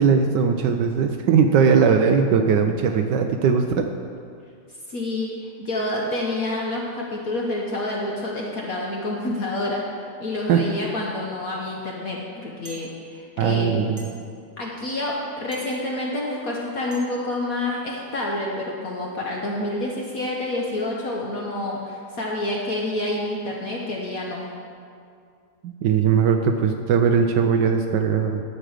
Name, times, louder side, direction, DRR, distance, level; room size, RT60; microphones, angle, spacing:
voice 1, 0.0-3.9 10.5-10.6 13.4-14.1 25.6-28.4, right 6 dB, 75° right, 5 dB, 1.0 m, -19 dB
voice 2, 4.9-9.9 10.2-13.8 14.6-24.4, left 1 dB, 50° left, -2 dB, 1.2 m, -28 dB
sound 1, 12.6-12.8 14.0-14.1 15.5-15.7 16.9-17.0, right 3 dB, 20° right, 1.3 m, -43 dB
11.5 x 7.6 x 4.9 m, 2.3 s
omnidirectional pair, 2.3 m